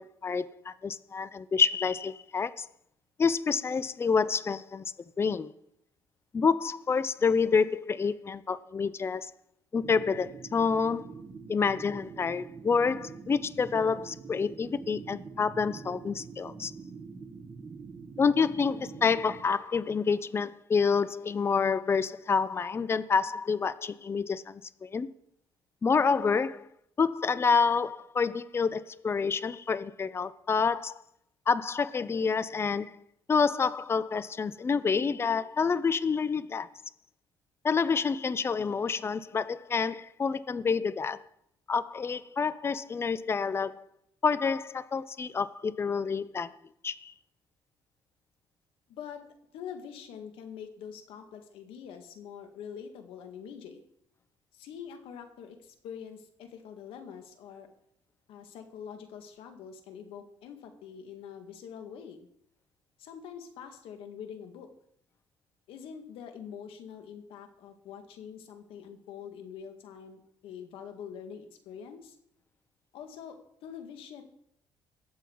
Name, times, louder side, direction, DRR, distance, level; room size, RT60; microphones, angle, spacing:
voice 1, 0.0-2.7 3.2-4.8 5.2-5.5 6.3-9.3 9.7-11.1 11.5-16.7 18.2-25.1 25.8-26.7 27.0-30.9 31.5-33.0 33.3-36.7 37.6-41.2 41.7-43.8 44.2-46.5 46.8-47.1, left 5 dB, 30° left, 0.6 m, -28 dB
sound 1, 9.8-19.4, right 5 dB, 35° right, 1.9 m, -45 dB
voice 2, 48.9-49.2 49.5-53.8 54.5-57.7 58.3-62.3 63.0-64.7 65.7-72.2 72.9-74.2, left 7 dB, 80° left, 1.9 m, -45 dB
20.0 x 7.7 x 4.7 m
cardioid pair, 105°, 9 cm